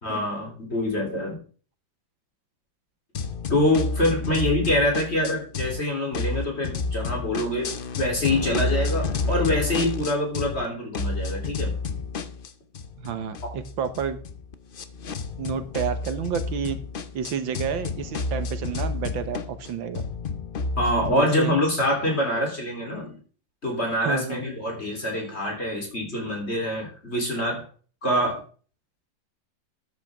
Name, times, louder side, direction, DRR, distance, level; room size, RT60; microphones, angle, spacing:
voice 1, 0.0-1.4 3.5-11.7 20.8-23.2 23.6-27.7 28.0-28.4, left 1 dB, 35° left, 1 dB, 3.9 m, -25 dB
sound 1, 3.1-5.8 6.1-10.7 10.9-21.1, left 4 dB, 55° left, 0.6 m, -30 dB
voice 2, 13.0-14.2 15.4-16.8 17.1-20.0 21.1-21.5 24.0-24.4, right 7 dB, 85° right, 10 dB, 1.9 m, -30 dB
13.0 x 9.1 x 3.7 m, 0.40 s
omnidirectional pair, 2.1 m